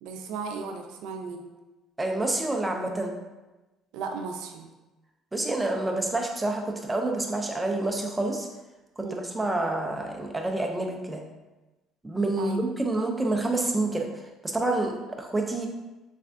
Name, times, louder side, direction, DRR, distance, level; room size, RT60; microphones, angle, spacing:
voice 1, 0.0-1.5 3.9-4.7 9.0-9.3 12.4-12.6, right 4 dB, 85° right, 4 dB, 0.4 m, -36 dB
voice 2, 2.0-3.1 5.3-8.5 9.0-11.2 12.0-14.1 14.4-15.7, right 2 dB, 10° right, 1 dB, 0.4 m, -28 dB
3.4 x 3.2 x 2.5 m, 1.1 s
cardioid pair, 145°, 0 cm